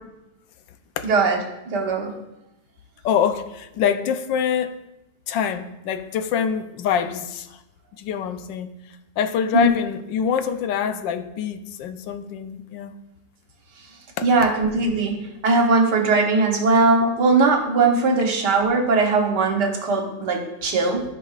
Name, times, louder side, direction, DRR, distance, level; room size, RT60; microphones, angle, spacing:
voice 1, 1.0-1.4 1.7-2.1 9.5-9.7 14.2-15.2 15.4-21.0, right 3 dB, 70° right, 2 dB, 1.7 m, -19 dB
voice 2, 3.0-4.8 5.3-7.6 8.0-8.7 9.2-12.9 14.2-14.3, left 8 dB, 85° left, 9 dB, 1.3 m, -25 dB
14.0 x 5.3 x 2.4 m, 0.92 s
omnidirectional pair, 1.9 m